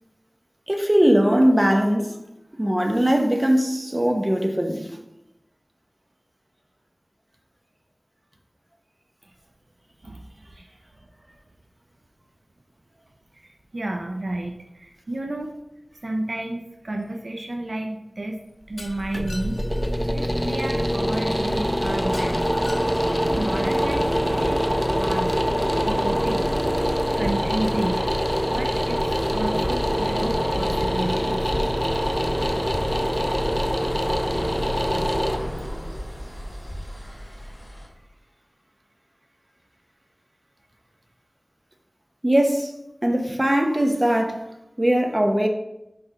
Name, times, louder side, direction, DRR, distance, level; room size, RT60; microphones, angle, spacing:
voice 1, 0.7-2.2 2.6-5.0 42.2-42.7 43.0-44.4 44.8-45.5, equal, 25° right, 3 dB, 1.0 m, -20 dB
voice 2, 13.3-15.5 16.0-18.4 18.7-19.6 20.1-22.7 23.0-24.6 25.0-25.4 25.8-26.4 27.2-28.0 28.5-31.5 34.8-35.3, right 1 dB, 65° right, 2 dB, 0.6 m, -31 dB
sound 1, 18.7-37.7, equal, ahead, 0.5 m, -24 dB
Shatter, 18.8-19.9 22.1-23.4, left 2 dB, 85° left, 0.8 m, -42 dB
sound 2, 31.9-37.9, equal, 40° left, 2.2 m, -42 dB
5.9 x 3.4 x 5.5 m, 0.89 s
wide cardioid pair, 40°, 0 cm